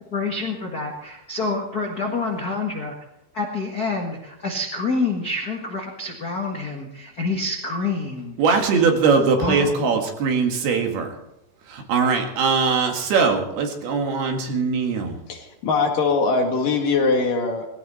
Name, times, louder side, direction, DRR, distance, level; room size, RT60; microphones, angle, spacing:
voice 1, 0.1-3.0 3.3-8.4 9.4-9.9, left 3 dB, 45° left, 1 dB, 1.2 m, -27 dB
voice 2, 8.4-11.1 11.7-15.2, right 5 dB, 80° right, 3 dB, 3.9 m, -21 dB
voice 3, 15.3-17.7, left 4 dB, 65° left, 2 dB, 3.6 m, -21 dB
19.0 x 16.5 x 4.3 m, 0.86 s
omnidirectional pair, 4.4 m